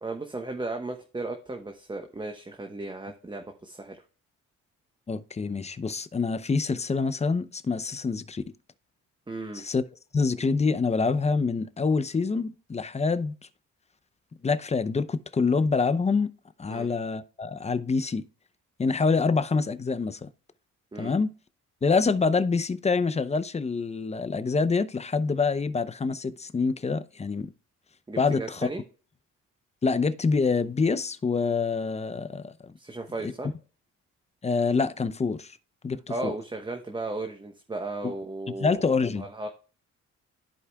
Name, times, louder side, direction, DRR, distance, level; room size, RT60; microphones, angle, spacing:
voice 1, 0.0-4.0 9.3-9.6 16.7-16.9 20.9-21.1 28.1-28.8 32.8-33.5 36.1-38.8 39.2-39.5, right 2 dB, 15° right, 1.0 m, -35 dB
voice 2, 5.1-8.4 9.5-9.8 10.1-13.3 14.4-16.3 16.6-18.2 18.8-20.3 21.0-21.3 21.8-27.5 28.2-28.7 29.8-32.7 33.2-33.3 34.4-35.5 35.8-36.3 38.0-38.1 38.6-39.2, left 4 dB, 20° left, 0.6 m, -26 dB
14.0 x 4.8 x 2.3 m
cardioid pair, 90°, 30 cm